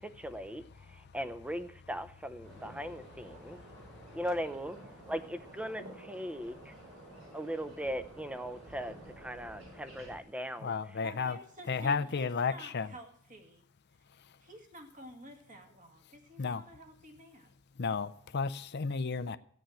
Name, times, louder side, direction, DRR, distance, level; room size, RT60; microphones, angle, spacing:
voice 1, 0.0-3.6 4.1-4.8 5.1-6.7 7.3-10.7, equal, 5° right, 11 dB, 0.7 m, -39 dB
sound 1, 2.4-10.2, right 1 dB, 65° right, 5.5 m, -51 dB
voice 2, 3.6-4.2 10.6-11.4 11.7-12.9 14.2-14.4 16.4-16.6 17.8-19.4, left 5 dB, 50° left, 12 dB, 0.6 m, -33 dB
voice 3, 5.0-5.6 9.0-10.5 11.0-13.6 13.9-14.0 14.4-17.6, right 1 dB, 35° right, 4 dB, 2.0 m, -52 dB
14.5 x 6.3 x 9.0 m, 0.64 s
head